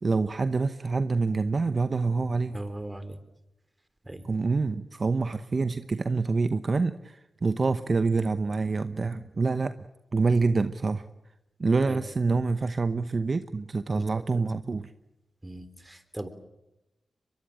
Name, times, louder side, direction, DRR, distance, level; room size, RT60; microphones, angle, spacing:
voice 1, 0.0-2.6 4.2-9.8 10.1-11.0 11.6-14.9, right 4 dB, 50° right, 11 dB, 0.9 m, -26 dB
voice 2, 2.5-3.2 4.0-4.3 11.9-12.0 13.9-14.3 15.4-16.3, right 1 dB, 20° right, 11 dB, 3.6 m, -38 dB
23.0 x 22.5 x 9.0 m, 0.93 s
supercardioid pair, 40°, 0 cm